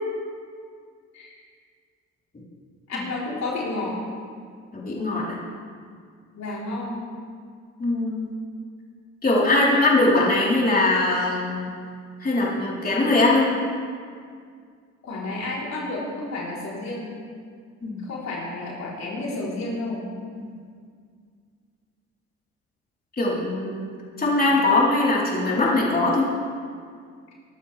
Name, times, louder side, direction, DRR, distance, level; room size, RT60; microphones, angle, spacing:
voice 1, 2.9-4.0 6.3-7.1 15.0-17.1 18.0-20.0, left 2 dB, 60° left, -5 dB, 3.7 m, -31 dB
voice 2, 4.7-5.4 7.8-8.3 9.2-11.7 12.2-13.5 17.8-18.1 23.2-23.9 24.2-26.3, left 2 dB, 30° left, -5 dB, 3.8 m, -21 dB
23.0 x 12.5 x 3.4 m, 2.1 s
cardioid pair, 90°, 30 cm